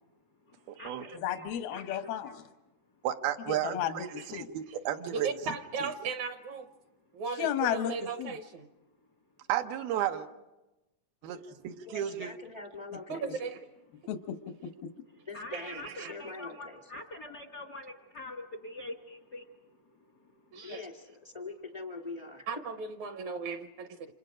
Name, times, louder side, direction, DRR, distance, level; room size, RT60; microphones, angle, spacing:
voice 1, 0.5-1.4 1.7-2.0 15.1-20.5, left 2 dB, 65° left, 1.0 m, -45 dB
voice 2, 1.1-2.5 3.5-4.5 7.4-8.4 14.1-14.9, left 9 dB, 90° left, 3.0 m, -34 dB
voice 3, 3.0-5.3 9.5-10.3 11.2-12.3, right 11 dB, 90° right, 3.0 m, -33 dB
voice 4, 5.1-6.7 7.1-8.7 13.1-13.6 15.5-16.2 20.5-20.8 22.5-24.1, right 5 dB, 70° right, 1.9 m, -37 dB
voice 5, 11.8-13.4 15.3-16.8 20.6-22.4, left 3 dB, 30° right, 0.5 m, -43 dB
29.0 x 27.0 x 5.1 m
omnidirectional pair, 4.2 m